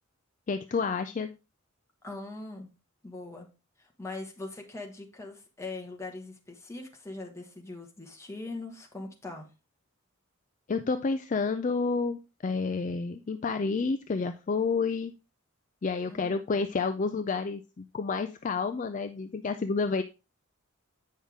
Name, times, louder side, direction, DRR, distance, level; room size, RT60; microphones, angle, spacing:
voice 1, 0.5-1.3 10.7-15.1 15.8-20.0, left 4 dB, 35° left, 9 dB, 0.4 m, -30 dB
voice 2, 2.0-2.7 3.0-3.5 3.8-9.5 16.1-16.3, left 2 dB, 15° left, 1 dB, 1.4 m, -41 dB
8.6 x 5.6 x 3.6 m, 0.29 s
head